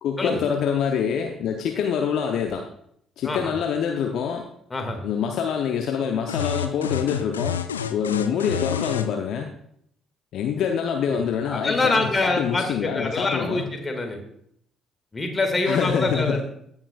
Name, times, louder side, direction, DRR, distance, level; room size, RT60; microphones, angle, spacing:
voice 1, 0.0-2.6 3.2-4.4 5.0-7.6 7.9-9.5 10.3-13.7 15.7-16.4, left 7 dB, 60° left, 3 dB, 0.7 m, -25 dB
sound 1, 6.3-9.1, left 8 dB, 85° left, 0.3 m, -28 dB
voice 2, 11.1-14.2 15.1-16.4, left 2 dB, 25° left, 4 dB, 1.9 m, -25 dB
15.5 x 5.7 x 2.4 m, 0.69 s
figure-of-eight pair, 45°, 0 cm